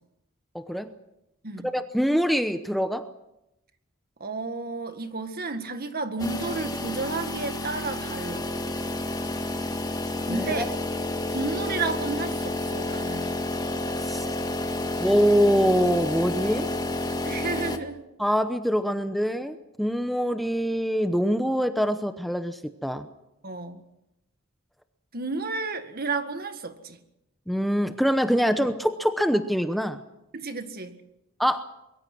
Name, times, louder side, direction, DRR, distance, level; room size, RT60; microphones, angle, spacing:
voice 1, 0.5-0.9 1.6-3.1 10.3-10.6 14.0-14.3 15.0-16.7 18.2-23.1 27.5-30.0 31.4-31.6, equal, ahead, 0.8 m, -24 dB
voice 2, 4.2-8.5 10.3-10.7 11.3-13.3 17.2-18.0 23.4-23.8 25.1-27.0 30.3-31.0, right 3 dB, 45° right, 1.9 m, -32 dB
sound 1, 6.2-17.8, left 2 dB, 20° left, 1.6 m, -30 dB
23.5 x 22.5 x 6.2 m
head